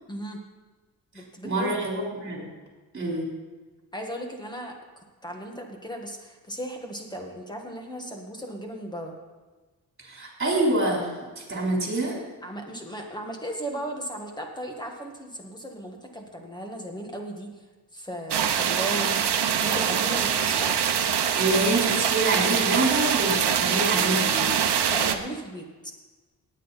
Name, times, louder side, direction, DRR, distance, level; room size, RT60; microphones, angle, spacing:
voice 1, 0.1-0.4 1.1-1.7 3.9-4.8 5.2-9.2 12.4-17.5 17.9-19.2 19.6-20.8 24.9-25.9, right 1 dB, 10° left, 2 dB, 1.7 m, -36 dB
voice 2, 1.4-2.4 2.9-3.3 10.0-12.2 21.4-24.5, right 2 dB, 30° right, -2 dB, 3.9 m, -26 dB
sound 1, 18.3-25.2, right 8 dB, 80° right, 0.9 m, -24 dB
18.0 x 9.0 x 4.2 m, 1.3 s
wide cardioid pair, 160°, 39 cm